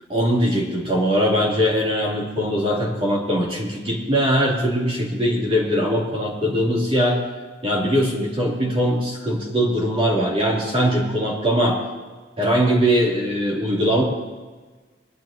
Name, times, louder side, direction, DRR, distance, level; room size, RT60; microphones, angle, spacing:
voice 1, 0.1-7.2 7.6-11.8 12.4-14.0, equal, 30° right, -4 dB, 3.4 m, -21 dB
21.0 x 12.0 x 3.0 m, 1.3 s
head